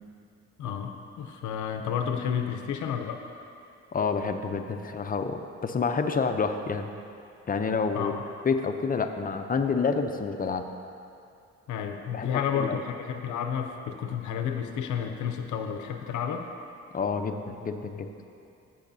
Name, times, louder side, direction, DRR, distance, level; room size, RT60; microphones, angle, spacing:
voice 1, 0.6-3.2 7.9-8.2 11.7-16.5, left 8 dB, 75° left, 5 dB, 0.7 m, -31 dB
voice 2, 3.9-6.9 7.5-8.1 8.4-10.7 12.1-12.8 16.9-18.1, left 5 dB, 30° left, 7 dB, 0.6 m, -28 dB
14.5 x 6.4 x 2.7 m, 2.6 s
cardioid pair, 90°, 30 cm